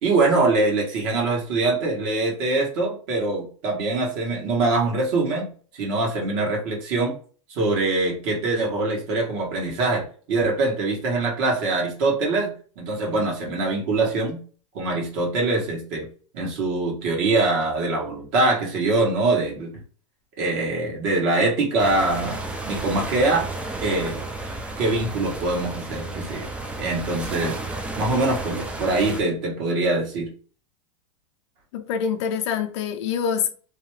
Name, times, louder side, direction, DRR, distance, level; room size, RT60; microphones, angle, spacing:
voice 1, 0.0-5.5 5.7-7.1 7.5-14.4 14.7-16.1 16.3-19.7 20.4-23.5 23.8-24.3 24.8-26.5 26.8-27.6 28.0-30.3, right 2 dB, 50° right, 1.4 m, -23 dB
sound 1, 21.8-29.2, right 2 dB, 5° right, 0.4 m, -32 dB
voice 2, 31.7-33.5, left 7 dB, 60° left, 0.6 m, -25 dB
2.8 x 2.2 x 3.1 m
supercardioid pair, 130°, 16 cm